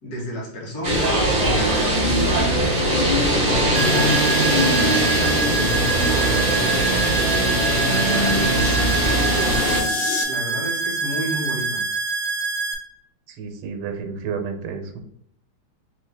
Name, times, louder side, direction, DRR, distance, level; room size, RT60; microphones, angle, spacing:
voice 1, 0.0-2.7 3.0-9.9 10.3-11.8, equal, 55° left, -3 dB, 1.6 m, -30 dB
sound 1, 0.8-9.8, right 1 dB, 30° right, 1.2 m, -20 dB
sound 2, 2.3-10.2, left 6 dB, 80° left, 1.4 m, -33 dB
sound 3, 3.7-12.7, right 3 dB, 65° right, 0.8 m, -26 dB
voice 2, 13.4-15.0, right 6 dB, 85° right, 6 dB, 1.6 m, -30 dB
3.8 x 3.2 x 3.3 m, 0.69 s
omnidirectional pair, 2.3 m